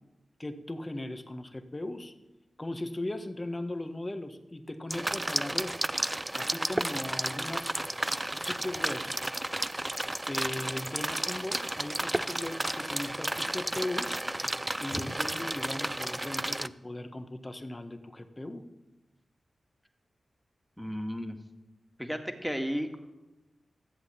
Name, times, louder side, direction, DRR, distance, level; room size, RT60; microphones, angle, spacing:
voice 1, 0.4-2.1 2.6-5.8 6.3-7.8 8.3-9.2 10.3-14.2 14.8-18.7, left 1 dB, 30° left, 8 dB, 1.5 m, -38 dB
sound 1, 4.9-16.7, right 1 dB, 20° right, 0.5 m, -32 dB
voice 2, 20.8-21.4 22.0-23.0, equal, ahead, 5 dB, 2.1 m, -33 dB
14.0 x 7.9 x 7.3 m, 1.0 s
cardioid pair, 40°, 0 cm